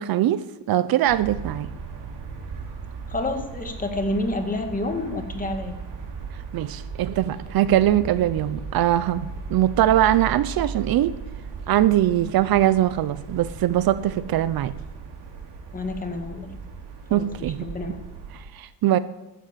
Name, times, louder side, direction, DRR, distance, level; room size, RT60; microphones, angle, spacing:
voice 1, 0.0-1.7 6.5-11.1 11.7-14.7 17.1-17.7 18.5-19.0, right 12 dB, 60° right, 0.7 m, -21 dB
sound 1, 1.1-18.4, right 5 dB, 85° right, 3.5 m, -37 dB
voice 2, 3.1-5.8 15.7-16.5 17.1-18.0, left 2 dB, 20° left, 2.0 m, -29 dB
14.0 x 13.0 x 7.5 m
cardioid pair, 145°, 41 cm